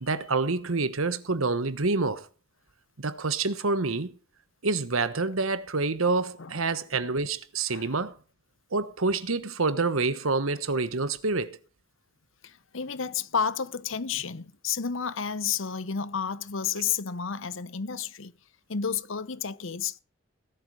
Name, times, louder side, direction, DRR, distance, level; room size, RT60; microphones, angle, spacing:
voice 1, 0.0-2.3 3.0-4.1 4.6-8.2 8.7-11.6, right 3 dB, 85° right, 1.3 m, -27 dB
voice 2, 12.4-18.3 18.7-20.0, left 6 dB, 70° left, 0.9 m, -31 dB
17.5 x 12.0 x 4.9 m
head